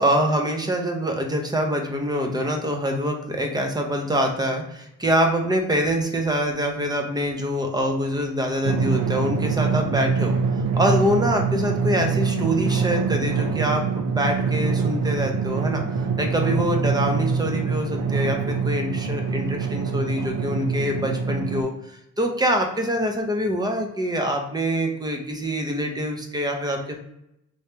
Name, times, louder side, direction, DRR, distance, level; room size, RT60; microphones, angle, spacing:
voice 1, 0.0-10.4 10.8-15.8 16.2-27.0, equal, 15° right, 3 dB, 0.8 m, -25 dB
Drum, 8.6-21.6, right 5 dB, 80° right, 0.6 m, -24 dB
3.3 x 3.2 x 2.8 m, 0.82 s
cardioid pair, 90°, 30 cm